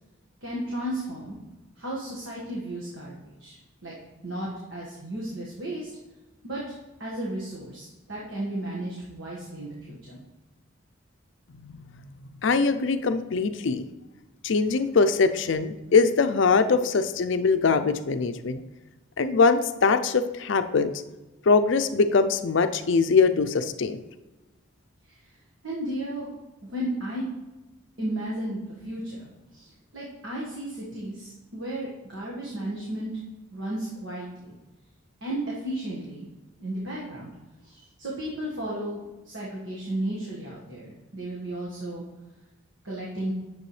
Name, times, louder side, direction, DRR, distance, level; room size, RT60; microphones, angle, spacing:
voice 1, 0.4-1.4 1.8-3.5 3.8-3.9 4.2-5.9 6.4-6.6 7.0-10.2 25.1-25.2 25.6-26.3 26.6-27.2 28.0-29.7 29.9-33.1 33.5-34.5 35.2-36.3 36.6-37.3 37.6-42.0 42.8-43.3, right 1 dB, 65° right, -5 dB, 1.5 m, -34 dB
voice 2, 12.4-13.8 14.4-18.6 19.2-20.9 21.5-24.0, left 4 dB, 60° left, 9 dB, 0.5 m, -22 dB
9.6 x 6.9 x 3.2 m, 1.1 s
head